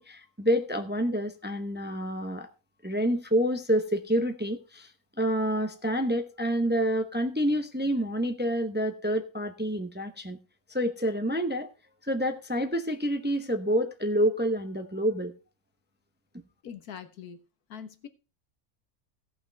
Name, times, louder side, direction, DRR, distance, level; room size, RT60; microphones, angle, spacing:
voice 1, 0.0-2.5 2.8-4.9 5.2-10.4 10.7-11.7 12.0-15.3, equal, 10° right, 6 dB, 0.7 m, -28 dB
voice 2, 16.6-17.4 17.7-18.1, left 8 dB, 85° left, 9 dB, 1.6 m, -42 dB
16.5 x 5.9 x 4.6 m, 0.32 s
omnidirectional pair, 1.6 m